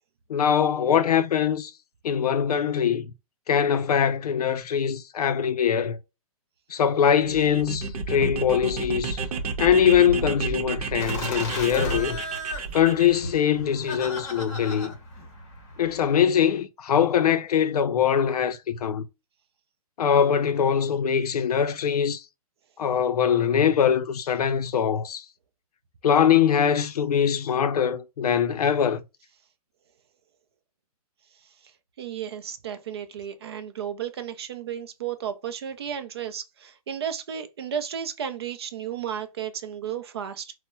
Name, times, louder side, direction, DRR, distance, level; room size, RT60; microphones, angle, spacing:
voice 1, 0.3-1.7 2.0-3.1 3.5-6.0 6.7-9.2 9.6-12.2 12.7-14.9 15.8-19.1 20.0-22.2 22.8-25.2 26.0-29.0, left 8 dB, 80° left, 0.5 m, -22 dB
sound 1, 7.1-13.2, right 4 dB, 75° right, 0.8 m, -31 dB
Laughter, 11.0-16.2, left 1 dB, 25° left, 0.8 m, -35 dB
voice 2, 32.0-40.5, right 9 dB, 40° right, 0.4 m, -33 dB
4.1 x 2.1 x 2.2 m
hypercardioid pair, 165°, 20 cm